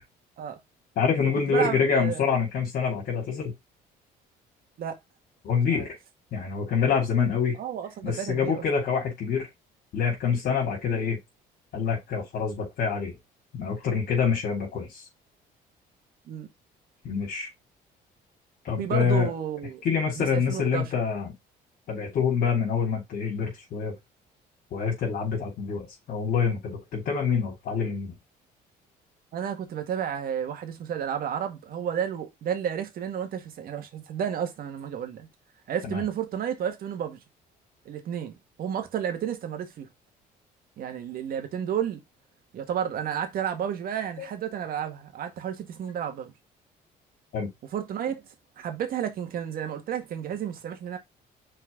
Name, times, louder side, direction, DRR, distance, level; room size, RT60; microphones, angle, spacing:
voice 1, 1.0-3.5 5.4-5.9 6.3-7.6 8.0-9.5 9.9-11.2 11.7-13.1 13.5-15.1 17.0-17.5 18.6-19.3 19.8-21.3 21.9-23.9 24.7-28.1 35.8-36.0 44.2-44.3 47.3-47.5, left 6 dB, 65° left, 3.0 m, -26 dB
voice 2, 1.5-2.3 4.8-5.0 5.7-5.9 7.6-8.6 16.3-16.5 18.8-19.8 20.2-20.9 29.3-35.3 35.7-37.2 37.9-39.9 40.8-42.0 42.5-46.3 47.7-48.3 48.6-51.0, right 9 dB, 60° right, 1.8 m, -31 dB
6.1 x 4.5 x 3.9 m
cardioid pair, 110°, 17 cm